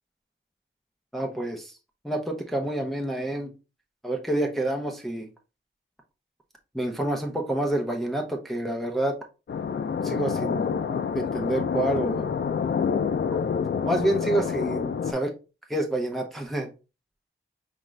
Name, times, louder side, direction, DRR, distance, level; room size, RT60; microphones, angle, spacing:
voice 1, 1.1-1.7 2.0-3.5 4.0-5.3 6.7-9.2 10.0-10.7 11.1-12.3 13.8-15.3 15.7-16.7, right 1 dB, ahead, 1 dB, 0.8 m, -28 dB
sound 1, 9.5-15.1, left 6 dB, 60° left, 0.4 m, -27 dB
5.1 x 2.5 x 3.2 m, 0.30 s
wide cardioid pair, 65°, 21 cm